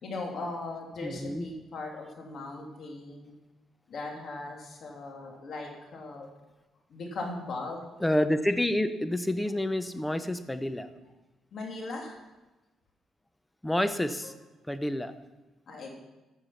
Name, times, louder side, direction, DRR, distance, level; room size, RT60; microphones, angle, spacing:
voice 1, 0.0-3.3 3.9-6.3 6.9-7.9 11.5-12.1 15.7-15.9, left 2 dB, 60° left, 1 dB, 2.7 m, -38 dB
voice 2, 1.0-1.5 8.0-10.9 13.6-14.3 14.7-15.1, left 1 dB, 10° left, 11 dB, 0.8 m, -28 dB
13.5 x 6.8 x 5.8 m, 1.1 s
cardioid pair, 90°, 0 cm